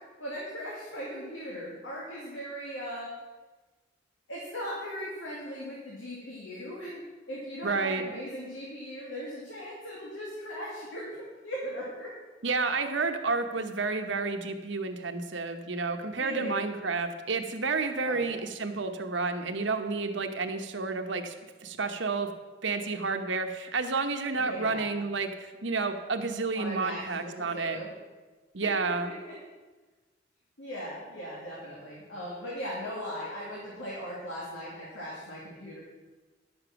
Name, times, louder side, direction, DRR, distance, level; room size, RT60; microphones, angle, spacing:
voice 1, 0.2-3.1 4.3-12.1 16.2-16.5 18.0-18.4 24.4-24.9 26.5-27.9 28.6-29.4 30.6-35.8, equal, 80° left, -5 dB, 2.4 m, -39 dB
voice 2, 7.6-8.0 12.4-21.3 21.6-22.3 22.6-27.8 28.5-29.1, right 4 dB, 70° right, 6 dB, 1.0 m, -30 dB
11.0 x 7.0 x 6.0 m, 1.3 s
head